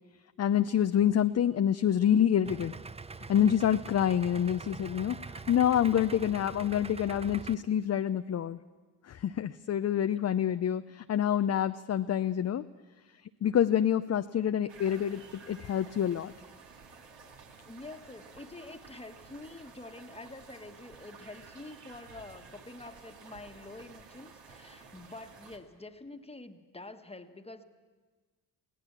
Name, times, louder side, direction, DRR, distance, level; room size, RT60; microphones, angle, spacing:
voice 1, 0.4-2.7 3.3-8.6 9.0-12.6 13.4-16.3, left 9 dB, 35° left, 10 dB, 0.6 m, -27 dB
Idling, 2.4-7.5, right 4 dB, 15° right, 0.6 m, -44 dB
sound 1, 14.7-25.6, right 5 dB, 65° right, 2.4 m, -53 dB
voice 2, 17.7-27.6, left 2 dB, 15° left, 8 dB, 1.4 m, -47 dB
23.0 x 16.5 x 7.4 m, 1.4 s
hypercardioid pair, 55°, 46 cm